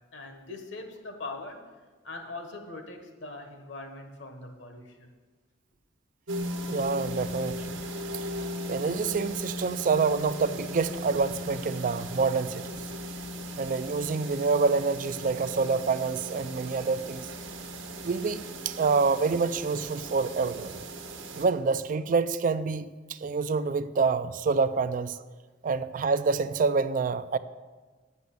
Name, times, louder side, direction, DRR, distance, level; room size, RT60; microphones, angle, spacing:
voice 1, 0.1-1.6 2.0-5.1, left 2 dB, 65° left, 5 dB, 1.3 m, -41 dB
sound 1, 6.3-21.5, equal, 75° right, 1.1 m, -37 dB
voice 2, 6.7-7.7 8.7-12.8 13.6-17.3 18.0-20.8 21.3-25.2 25.6-27.4, right 4 dB, 40° right, 14 dB, 0.3 m, -27 dB
8.2 x 6.1 x 8.0 m, 1.4 s
head